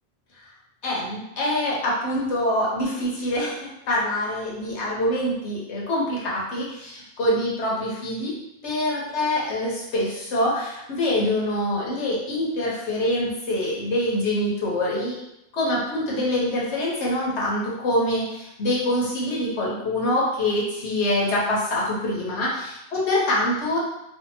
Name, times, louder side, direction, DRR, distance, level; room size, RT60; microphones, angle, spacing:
voice 1, 0.8-8.3 8.6-15.1 15.5-23.8, left 1 dB, 65° left, -5 dB, 1.0 m, -25 dB
2.7 x 2.4 x 2.6 m, 0.86 s
omnidirectional pair, 1.3 m